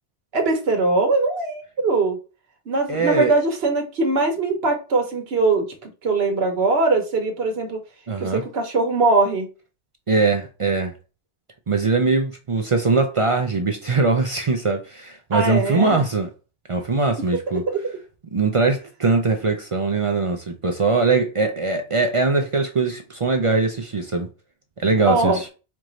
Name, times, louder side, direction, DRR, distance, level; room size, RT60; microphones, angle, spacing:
voice 1, 0.3-2.2 2.7-7.8 8.2-9.5 15.3-16.0 25.0-25.4, right 3 dB, 65° right, 1.2 m, -21 dB
voice 2, 2.9-3.3 8.1-8.4 10.1-10.9 11.7-16.3 16.7-17.6 18.3-24.3 24.8-25.5, right 3 dB, 45° right, 0.4 m, -21 dB
4.5 x 2.6 x 3.0 m
omnidirectional pair, 1.2 m